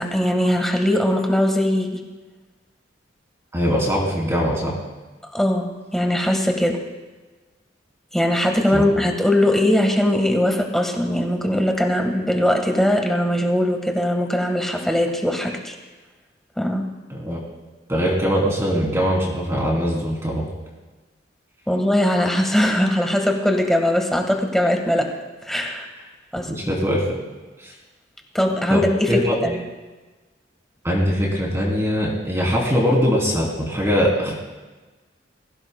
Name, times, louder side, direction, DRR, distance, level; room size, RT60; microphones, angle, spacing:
voice 1, 0.0-2.0 5.3-6.8 8.1-15.7 16.6-16.8 21.7-25.1 25.4-25.9 26.3-26.5 28.3-29.6, left 1 dB, ahead, 3 dB, 1.5 m, -20 dB
voice 2, 3.5-4.7 8.7-8.8 17.1-17.4 17.9-20.5 26.5-27.2 27.6-27.7 28.7-28.8 29.1-29.5 30.8-34.3, equal, 15° right, -3 dB, 3.0 m, -21 dB
21.0 x 16.0 x 2.2 m, 1.3 s
head